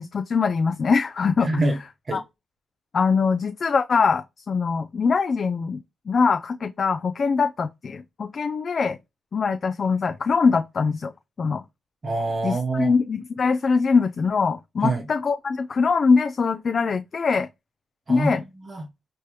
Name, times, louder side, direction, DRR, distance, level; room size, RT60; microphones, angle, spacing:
voice 1, 0.0-1.5 2.1-2.2 2.9-5.8 6.1-9.0 9.3-11.1 11.4-11.6 12.4-17.5 18.1-18.4, left 5 dB, 55° left, 0.4 m, -22 dB
voice 2, 1.4-1.8 2.1-2.2 12.0-12.9 14.8-15.0 18.1-18.9, right 2 dB, 45° right, 1.0 m, -25 dB
4.5 x 3.0 x 3.0 m
supercardioid pair, 50°, 0 cm